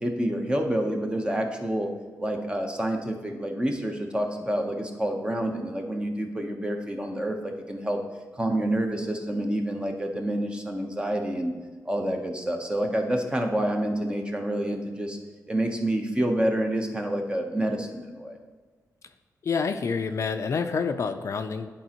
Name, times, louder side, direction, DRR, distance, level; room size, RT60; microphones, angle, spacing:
voice 1, 0.0-1.9 2.2-8.0 8.3-11.5 11.8-15.2 15.5-18.4, right 1 dB, 15° right, 3 dB, 0.8 m, -28 dB
voice 2, 19.4-21.7, left 5 dB, 50° left, 8 dB, 0.4 m, -28 dB
10.5 x 4.3 x 2.9 m, 1.4 s
wide cardioid pair, 130°, 6 cm